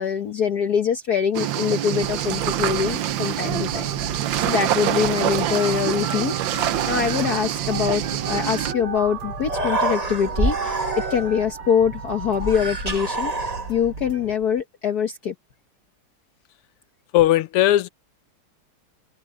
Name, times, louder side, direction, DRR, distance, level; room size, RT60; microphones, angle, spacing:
voice 1, 0.0-15.3, left 7 dB, 55° left, 1.4 m, -24 dB
sound 1, 1.3-8.7, right 12 dB, 65° right, 1.4 m, -25 dB
sound 2, 2.0-14.4, right 5 dB, 90° right, 3.8 m, -34 dB
Human voice, 9.0-9.1 9.3-11.4 12.3-14.0, right 2 dB, 20° right, 1.5 m, -27 dB
voice 2, 17.1-17.9, left 14 dB, 90° left, 1.6 m, -17 dB
omnidirectional pair, 2.4 m